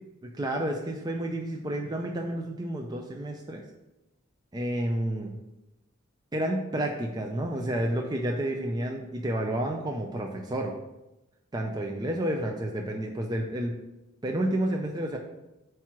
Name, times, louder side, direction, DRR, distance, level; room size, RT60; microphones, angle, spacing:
voice 1, 0.3-3.6 4.5-5.4 6.3-10.7 11.5-13.7 14.2-15.2, right 1 dB, 20° right, 1 dB, 0.5 m, -30 dB
4.6 x 4.5 x 5.9 m, 0.95 s
head